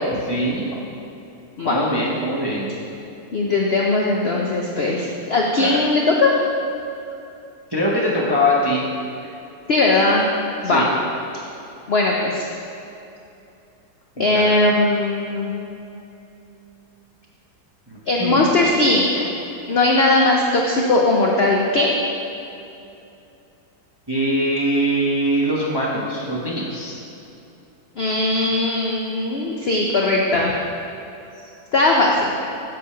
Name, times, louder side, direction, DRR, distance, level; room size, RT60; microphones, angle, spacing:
voice 1, 0.1-0.7 1.6-2.7 5.6-5.8 7.7-8.8 10.6-10.9 14.2-14.5 17.9-18.6 24.1-27.0, equal, 25° right, -4 dB, 0.5 m, -22 dB
voice 2, 3.3-6.4 9.7-10.3 10.6-10.9 11.9-12.5 14.2-15.5 18.1-19.3 19.7-21.9 28.0-30.5 31.7-32.3, left 2 dB, 80° left, -1 dB, 0.5 m, -19 dB
7.5 x 5.3 x 5.6 m, 2.8 s
omnidirectional pair, 2.0 m